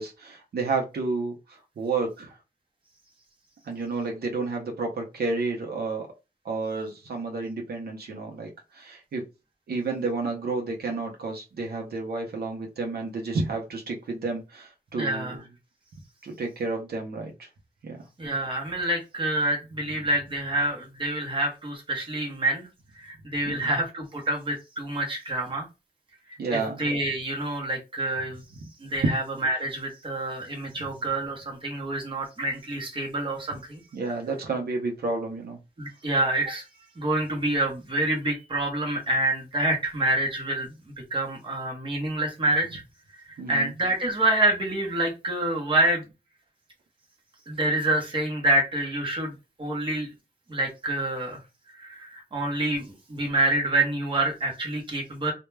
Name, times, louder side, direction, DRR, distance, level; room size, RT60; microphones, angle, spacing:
voice 1, 0.0-2.4 3.6-6.1 6.4-9.2 9.7-15.4 16.2-17.5 17.8-18.0 23.4-23.7 26.4-26.8 30.8-30.9 33.9-35.6 43.4-43.7, right 3 dB, 75° right, 1 dB, 0.6 m, -31 dB
voice 2, 14.9-15.4 18.2-22.7 23.0-25.7 26.5-28.4 28.8-33.8 35.8-36.6 37.0-40.7 41.1-42.8 43.5-46.0 47.5-49.3 49.6-50.1 50.5-51.4 51.7-55.3, right 1 dB, 30° right, -1 dB, 0.8 m, -27 dB
2.2 x 2.1 x 3.1 m, 0.27 s
wide cardioid pair, 175°, 16 cm